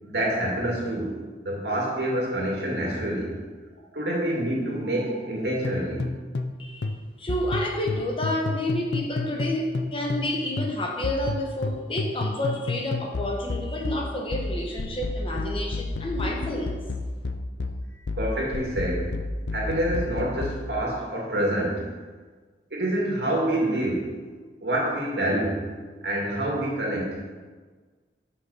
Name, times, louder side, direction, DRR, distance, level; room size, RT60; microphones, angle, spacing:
voice 1, 0.0-1.1 1.4-3.4 3.9-6.0 18.2-19.1 19.5-21.9 22.7-24.1 24.6-25.6 26.0-27.2, right 1 dB, 70° right, -3 dB, 2.3 m, -27 dB
sound 1, 5.6-10.3 10.6-20.6, left 3 dB, 75° left, 0.6 m, -31 dB
voice 2, 7.2-16.8, left 1 dB, 30° left, 0 dB, 1.2 m, -29 dB
8.0 x 5.9 x 5.6 m, 1.4 s
head